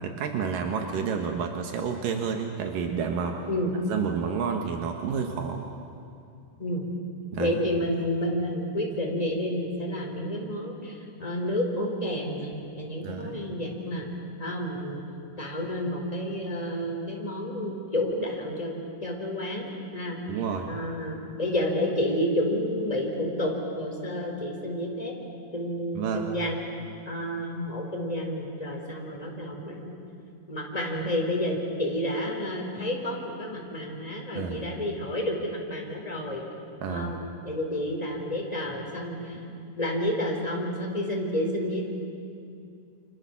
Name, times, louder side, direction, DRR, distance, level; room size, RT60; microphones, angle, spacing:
voice 1, 0.0-3.4 3.9-5.7 7.3-7.6 13.0-13.4 20.3-20.7 25.9-26.3 34.4-34.7 36.8-37.1, right 6 dB, 85° right, 3 dB, 3.1 m, -30 dB
voice 2, 7.4-14.1 14.4-15.0 15.4-20.2 20.7-25.1 25.5-26.6 27.1-30.0 30.5-36.4 36.9-39.4 39.8-41.8, left 1 dB, 10° left, 0 dB, 4.0 m, -30 dB
29.0 x 27.0 x 7.3 m, 2.5 s
omnidirectional pair, 3.8 m